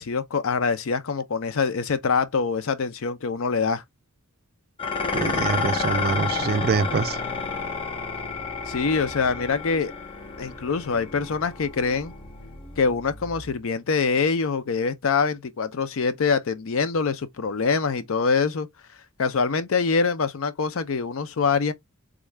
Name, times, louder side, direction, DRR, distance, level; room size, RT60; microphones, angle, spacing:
voice 1, 0.0-3.8 8.7-9.9 10.4-12.1 12.8-18.7 19.2-21.7, left 5 dB, 65° left, 0.5 m, -24 dB
Dishes pots and pans, 4.8-13.6, left 4 dB, 25° left, 0.7 m, -31 dB
voice 2, 5.1-7.2, right 5 dB, 45° right, 0.4 m, -25 dB
3.6 x 2.3 x 3.2 m
head